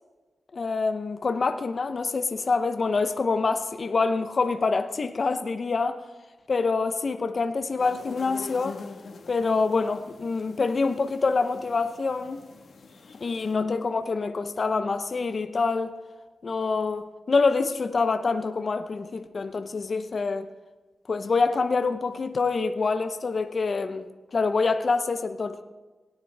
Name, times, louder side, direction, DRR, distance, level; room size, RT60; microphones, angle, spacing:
voice 1, 0.5-6.0 6.5-8.8 9.3-12.4 13.2-15.9 16.4-20.5 21.1-25.6, left 4 dB, 55° left, 0.6 m, -26 dB
sound 1, 7.8-13.5, left 4 dB, 80° left, 1.3 m, -45 dB
18.0 x 9.7 x 3.3 m
wide cardioid pair, 85°, 0 cm